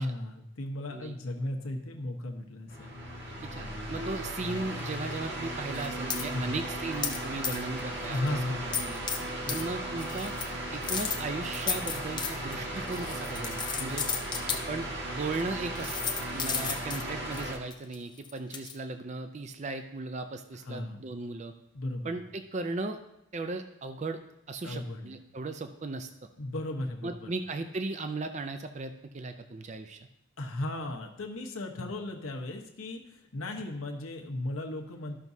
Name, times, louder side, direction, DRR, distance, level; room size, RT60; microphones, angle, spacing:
voice 1, 0.0-2.9 6.3-6.6 8.1-8.9 9.5-9.6 16.6-16.9 20.6-21.0 21.7-22.2 24.6-25.2 26.4-27.4 30.4-35.2, left 1 dB, 85° left, 1 dB, 1.1 m, -36 dB
sound 1, 2.7-17.5, right 1 dB, 55° right, 1.7 m, -36 dB
voice 2, 3.5-9.0 9.5-10.3 10.7-14.1 14.5-15.9 16.3-21.5 22.0-23.0 23.3-24.2 24.5-26.3 27.0-30.0, right 3 dB, 35° right, 8 dB, 0.4 m, -37 dB
sound 2, 5.8-6.2 7.0-7.2 7.4-7.8 8.1-8.3 8.7-9.2 9.5-9.6 10.0-10.5 10.8-14.6 15.3-15.4 15.8-18.8, left 6 dB, 20° left, 0.6 m, -33 dB
13.5 x 6.0 x 2.7 m, 0.83 s
head